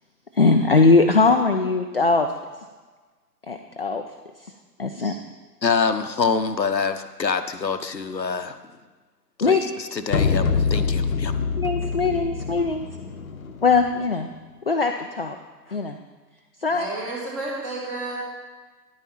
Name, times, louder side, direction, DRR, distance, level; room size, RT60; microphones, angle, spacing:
voice 1, 0.4-2.3 3.5-4.0 4.8-5.2 9.4-9.6 11.6-12.9 13.6-14.3 14.7-15.4 15.7-16.0 16.6-16.9, left 4 dB, 40° left, 4 dB, 0.5 m, -20 dB
voice 2, 5.6-8.6 9.4-11.3, left 5 dB, 85° left, 9 dB, 0.9 m, -25 dB
sound 1, 10.1-14.1, left 5 dB, 55° left, 0.9 m, -25 dB
voice 3, 16.7-18.2, right 2 dB, 20° right, -3 dB, 2.0 m, -31 dB
10.5 x 8.6 x 4.2 m, 1.3 s
figure-of-eight pair, 140°, 49 cm